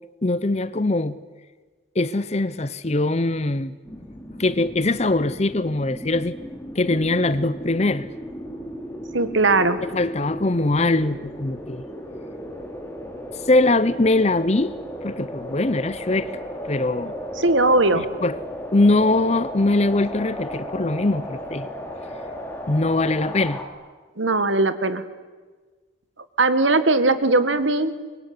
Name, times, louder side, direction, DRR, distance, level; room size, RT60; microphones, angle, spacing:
voice 1, 0.2-1.2 2.0-3.7 4.4-6.4 6.7-8.1 9.8-11.8 13.5-14.8 15.0-16.3 16.6-17.2 18.2-18.3 18.7-21.7 22.7-23.6, left 2 dB, 35° left, 15 dB, 0.8 m, -22 dB
sound 1, 3.8-23.6, equal, 10° left, 3.2 m, -35 dB
voice 2, 9.1-9.8 17.4-18.0 24.2-25.0 26.4-28.0, right 2 dB, 85° right, 12 dB, 1.9 m, -19 dB
25.0 x 23.0 x 9.7 m, 1.4 s
head